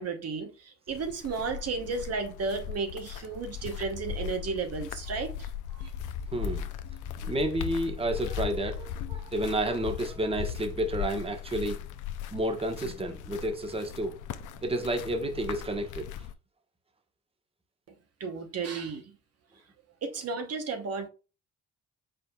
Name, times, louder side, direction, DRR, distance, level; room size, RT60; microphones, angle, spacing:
voice 1, 0.0-5.5 5.8-5.9 18.2-19.0 20.0-21.1, right 4 dB, 55° right, 1.0 m, -33 dB
sound 1, 0.9-16.3, left 9 dB, 80° left, 0.6 m, -38 dB
voice 2, 6.3-6.7 7.2-11.8 12.3-14.2 14.6-16.1, right 1 dB, 20° right, 1.1 m, -30 dB
5.1 x 4.3 x 2.3 m
cardioid pair, 90°, 30 cm